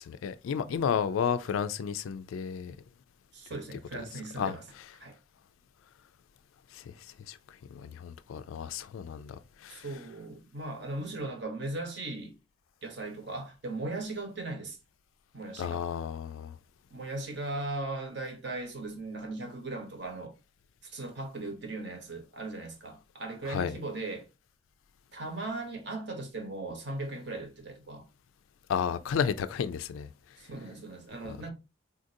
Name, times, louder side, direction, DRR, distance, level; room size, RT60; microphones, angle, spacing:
voice 1, 0.0-2.7 4.4-4.5 6.7-6.9 7.3-7.4 7.7-9.4 9.6-9.8 15.6-16.6 23.5-23.8 28.7-30.1 31.3-31.4, left 7 dB, 85° left, 0.3 m, -32 dB
voice 2, 3.3-4.6 5.0-5.2 9.7-12.4 12.8-14.8 15.3-15.8 16.9-20.3 20.8-24.3 25.1-28.0 30.4-31.5, right 2 dB, 60° right, 0.9 m, -38 dB
3.8 x 2.5 x 2.6 m
head